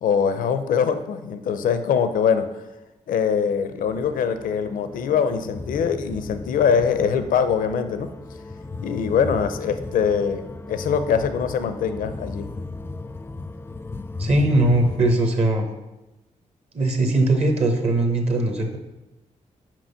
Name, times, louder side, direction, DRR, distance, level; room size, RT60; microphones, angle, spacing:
voice 1, 0.0-2.5 3.1-8.1 8.8-12.5, left 7 dB, 85° left, 10 dB, 0.6 m, -23 dB
sound 1, 3.8-15.1, left 3 dB, 15° left, 0.3 m, -36 dB
voice 2, 14.2-15.7 16.7-18.8, right 2 dB, 50° right, 4 dB, 1.1 m, -20 dB
6.0 x 4.9 x 5.6 m, 1.0 s
cardioid pair, 65°, 14 cm